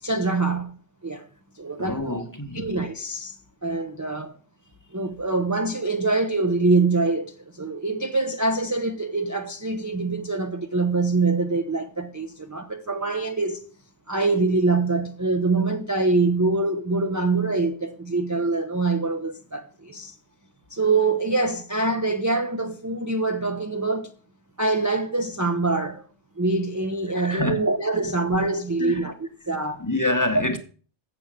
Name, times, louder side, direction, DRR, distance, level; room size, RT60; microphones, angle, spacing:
voice 1, 0.0-0.8 1.0-1.3 1.6-2.2 2.5-3.3 3.6-4.3 4.9-13.6 14.1-20.1 20.7-24.1 24.6-26.1 26.4-29.9, right 3 dB, 20° right, 0.5 m, -24 dB
voice 2, 1.8-2.7 27.1-27.6 28.8-29.1 29.8-30.6, left 1 dB, 15° left, 1.0 m, -26 dB
7.8 x 6.9 x 7.4 m
omnidirectional pair, 1.2 m